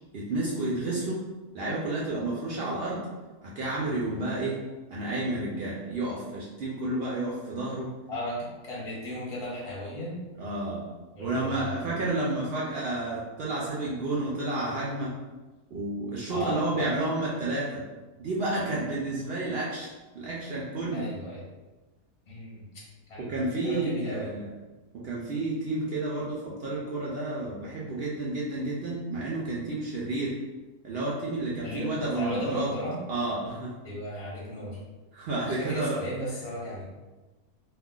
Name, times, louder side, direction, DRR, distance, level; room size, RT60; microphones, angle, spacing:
voice 1, 0.1-1.2 1.5-3.1 3.4-4.6 4.9-7.9 10.4-10.9 11.2-15.2 15.7-17.8 18.2-19.9 20.1-21.1 23.2-24.5 25.0-30.4 30.8-32.7 33.1-33.8 35.1-36.0, right 2 dB, 75° right, -5 dB, 0.5 m, -31 dB
voice 2, 8.1-10.2 11.2-11.9 16.3-17.0 20.9-21.5 22.3-22.7 23.1-24.3 31.6-33.0 33.8-34.8 35.5-36.8, equal, 35° left, -5 dB, 0.6 m, -36 dB
2.4 x 2.3 x 3.6 m, 1.2 s
omnidirectional pair, 1.6 m